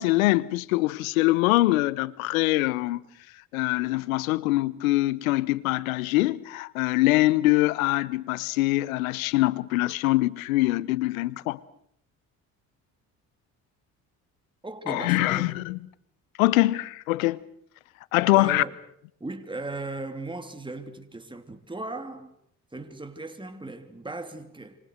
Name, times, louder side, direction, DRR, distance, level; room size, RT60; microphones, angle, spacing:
voice 1, 0.0-3.0 3.5-11.6 14.9-15.8 16.4-17.4 18.1-18.6, left 19 dB, 90° left, 1.0 m, -23 dB
voice 2, 14.6-15.4 18.3-18.7 19.2-22.3 22.7-24.8, right 2 dB, 10° right, 3.1 m, -37 dB
27.5 x 26.0 x 6.5 m
hypercardioid pair, 60°, 40 cm